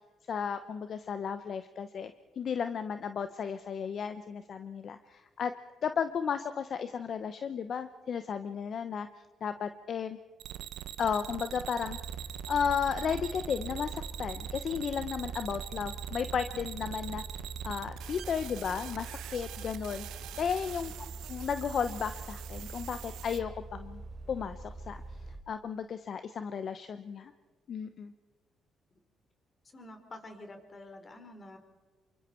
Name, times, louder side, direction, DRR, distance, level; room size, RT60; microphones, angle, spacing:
voice 1, 0.3-5.5 5.8-9.1 9.4-10.2 11.0-12.0 12.5-17.2 17.6-20.1 20.4-20.9 21.3-24.0 24.3-25.0 25.5-27.3 27.7-28.1, left 7 dB, 55° left, 10 dB, 1.0 m, -34 dB
sound 1, 10.4-23.4, right 12 dB, 85° right, 0.8 m, -43 dB
sound 2, 11.9-25.4, right 3 dB, 30° right, 3.1 m, -44 dB
voice 2, 29.6-31.6, left 2 dB, 35° left, 5 dB, 4.2 m, -48 dB
28.0 x 24.0 x 4.6 m, 1.3 s
cardioid pair, 90°, 0 cm